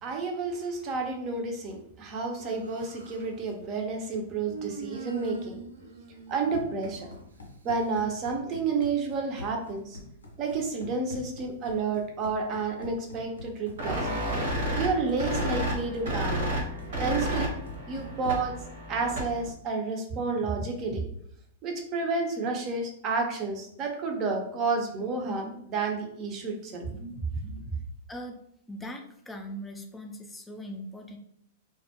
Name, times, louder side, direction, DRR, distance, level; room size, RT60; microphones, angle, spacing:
voice 1, 0.0-5.6 6.3-7.1 7.6-10.0 10.4-14.0 14.7-16.4 17.0-17.5 17.9-18.6 18.9-21.1 21.6-27.6, right 4 dB, 35° right, 2 dB, 0.5 m, -30 dB
Human voice, 2.4-3.3 4.5-7.2, right 4 dB, 90° right, 0.3 m, -42 dB
Run, 6.2-18.6, left 2 dB, 90° left, 0.5 m, -46 dB
sound 1, 13.8-19.5, equal, 65° right, 0.8 m, -31 dB
voice 2, 28.7-31.2, equal, 10° left, 4 dB, 0.4 m, -40 dB
2.2 x 2.1 x 2.8 m, 0.71 s
hypercardioid pair, 105°, 0 cm